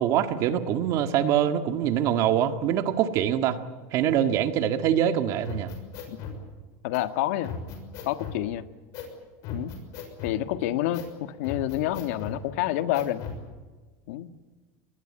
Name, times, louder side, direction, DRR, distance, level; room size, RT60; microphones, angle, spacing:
voice 1, 0.0-3.6 3.9-5.7, right 10 dB, 40° right, 9 dB, 1.7 m, -24 dB
sound 1, 5.4-6.4 6.9-7.0 7.4-8.4 8.9-9.1 9.4-10.4 10.9-11.1 11.4-12.4 12.9-13.4, left 6 dB, 45° left, 6.4 m, -37 dB
voice 2, 6.8-7.5 8.0-8.7 9.5-9.7 10.2-13.2 14.1-14.3, left 13 dB, 75° left, 11 dB, 1.6 m, -28 dB
25.5 x 20.5 x 8.7 m, 1.3 s
cardioid pair, 175°, 8 cm